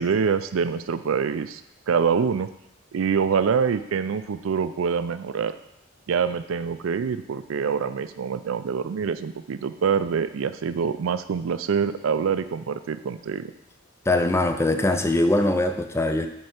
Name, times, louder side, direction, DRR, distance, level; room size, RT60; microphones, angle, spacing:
voice 1, 0.0-1.6 1.9-2.5 2.9-5.5 6.1-13.5, right 6 dB, 70° right, 12 dB, 0.4 m, -25 dB
voice 2, 14.1-16.3, left 2 dB, 15° left, 7 dB, 0.4 m, -22 dB
5.3 x 4.6 x 5.8 m, 0.83 s
head